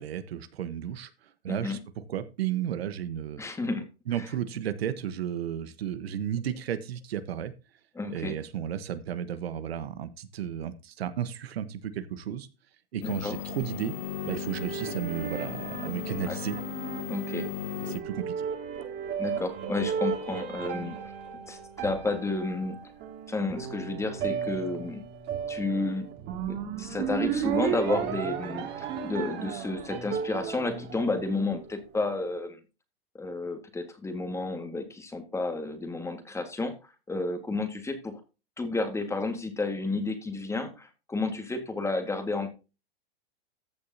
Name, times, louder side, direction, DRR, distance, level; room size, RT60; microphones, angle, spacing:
voice 1, 0.0-3.4 4.1-7.5 8.1-12.5 12.9-13.9 14.2-16.6 17.8-18.5, right 9 dB, 75° right, 12 dB, 1.2 m, -33 dB
voice 2, 1.5-1.8 3.4-3.9 4.2-4.3 7.9-8.4 13.0-13.4 16.2-16.4 17.1-17.5 19.2-21.0 21.5-22.8 23.3-25.0 25.5-26.1 26.5-32.6 33.1-36.7 37.1-38.2 38.6-42.5, left 3 dB, 10° left, 7 dB, 1.7 m, -31 dB
sound 1, 13.0-18.0, left 17 dB, 35° left, 0.4 m, -37 dB
sound 2, 13.3-31.9, right 7 dB, 35° right, 2.4 m, -34 dB
14.0 x 6.8 x 2.7 m, 0.30 s
hypercardioid pair, 130°, 31 cm